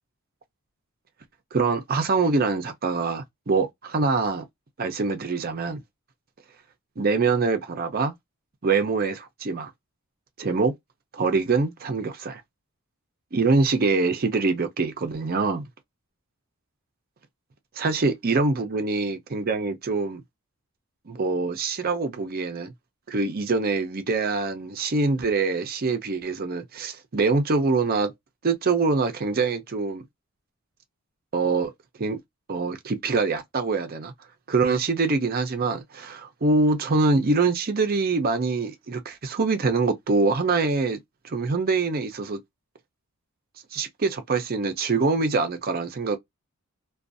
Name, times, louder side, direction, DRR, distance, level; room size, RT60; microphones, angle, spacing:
voice 1, 1.5-4.4 4.8-5.8 7.0-8.1 8.6-9.7 10.4-10.7 11.1-12.4 13.3-15.6 17.8-20.2 21.1-22.7 23.1-28.1 28.4-30.0 31.3-31.7 32.0-32.2 32.5-34.1 34.5-41.0 41.2-42.4 43.7-46.2, right 3 dB, 45° right, 0.5 m, -24 dB
2.5 x 2.2 x 2.5 m
head